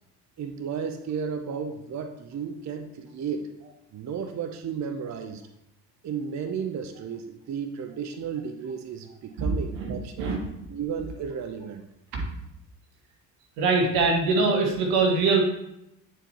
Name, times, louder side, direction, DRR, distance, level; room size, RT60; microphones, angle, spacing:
voice 1, 0.4-3.5 3.9-5.4 6.0-11.9, right 6 dB, 35° right, 7 dB, 0.7 m, -33 dB
voice 2, 9.8-10.4 12.1-12.2 13.6-15.4, right 4 dB, 75° right, 1 dB, 1.5 m, -23 dB
8.8 x 4.4 x 2.9 m, 0.82 s
hypercardioid pair, 55°, 50 cm